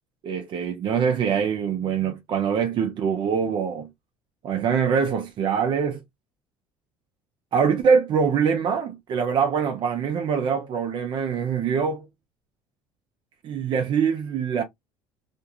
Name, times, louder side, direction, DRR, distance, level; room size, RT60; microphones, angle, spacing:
voice 1, 0.2-3.9 4.4-6.0 7.5-12.1 13.4-14.6, right 6 dB, 50° right, 0.6 m, -24 dB
2.5 x 2.3 x 2.8 m
supercardioid pair, 100°, 10 cm